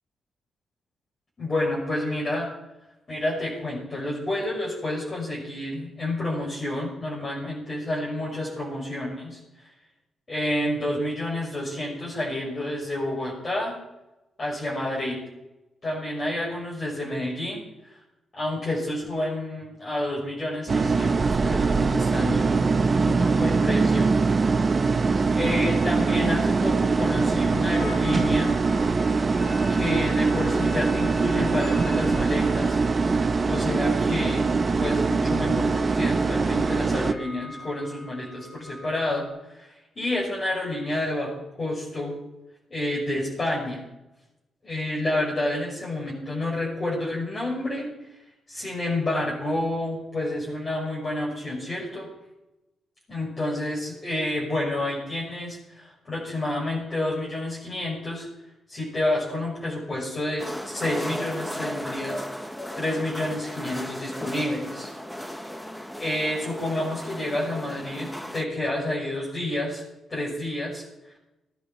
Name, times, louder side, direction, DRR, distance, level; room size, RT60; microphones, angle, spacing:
voice 1, 1.4-2.5 3.1-9.4 10.3-13.8 14.4-15.2 15.8-17.6 18.3-22.6 23.0-24.1 25.3-28.5 29.7-32.8 33.4-34.5 34.8-41.3 41.6-42.2 42.7-43.8 44.6-47.9 48.5-52.1 53.1-58.3 58.7-62.2 62.7-64.9 66.0-69.8 70.1-70.8, left 1 dB, 40° left, -5 dB, 6.5 m, -29 dB
sound 1, 20.7-37.1, right 4 dB, 40° right, 1.0 m, -23 dB
sound 2, 25.4-39.3, left 2 dB, 80° left, 5.3 m, -45 dB
sound 3, 60.4-68.4, equal, 10° left, 1.4 m, -35 dB
21.0 x 10.5 x 4.5 m, 0.94 s
supercardioid pair, 55°, 0 cm